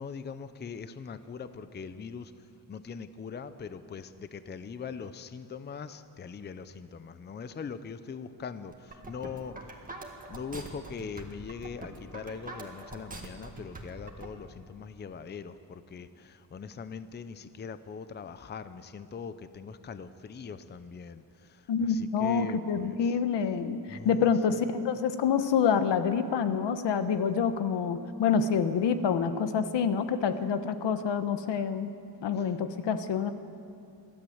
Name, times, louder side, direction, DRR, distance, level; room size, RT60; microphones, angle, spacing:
voice 1, 0.0-2.3 2.7-9.6 10.3-23.1 23.9-24.3 32.4-32.5, left 6 dB, 25° left, 12 dB, 0.6 m, -41 dB
sound 1, 8.7-14.3, right 2 dB, 20° right, 1.8 m, -43 dB
voice 2, 21.7-31.9 32.2-33.3, left 6 dB, 80° left, 10 dB, 1.2 m, -27 dB
27.5 x 12.0 x 7.9 m, 2.6 s
wide cardioid pair, 170°, 42 cm